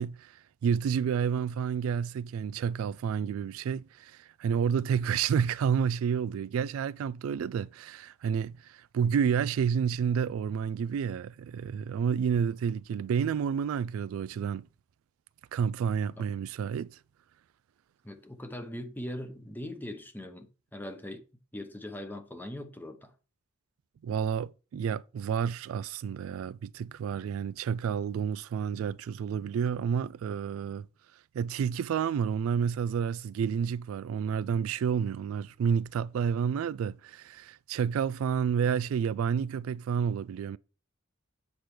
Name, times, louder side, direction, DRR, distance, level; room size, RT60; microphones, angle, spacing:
voice 1, 0.0-14.7 15.5-17.0 24.0-30.9 31.3-40.6, right 7 dB, 75° right, 0.3 m, -30 dB
voice 2, 18.0-21.2 21.5-23.1, left 1 dB, 10° left, 0.9 m, -40 dB
7.7 x 5.8 x 3.3 m
head